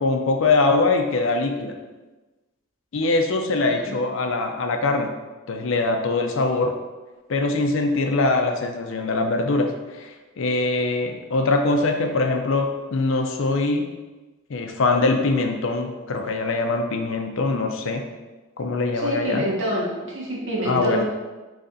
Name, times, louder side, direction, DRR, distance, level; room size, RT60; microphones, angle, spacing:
voice 1, 0.0-1.8 2.9-5.1 5.5-6.8 7.3-10.1 10.4-13.9 14.5-18.0 18.6-19.5 20.7-21.0, left 3 dB, 65° left, 4 dB, 0.5 m, -22 dB
voice 2, 3.6-4.0 18.9-21.0, equal, 60° right, -5 dB, 1.3 m, -27 dB
4.0 x 3.2 x 3.9 m, 1.2 s
head